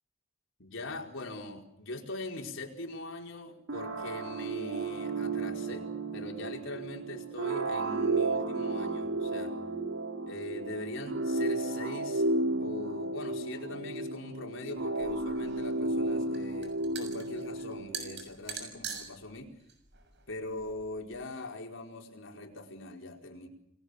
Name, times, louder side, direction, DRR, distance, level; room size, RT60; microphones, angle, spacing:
voice 1, 0.6-9.6 10.3-12.3 12.6-19.5 20.3-23.5, left 2 dB, 70° left, 1 dB, 4.8 m, -42 dB
sound 1, 3.7-18.2, right 2 dB, 90° right, 2.4 m, -33 dB
sound 2, 15.0-21.1, right 6 dB, 60° right, 6.6 m, -44 dB
29.0 x 21.0 x 6.6 m, 0.76 s
head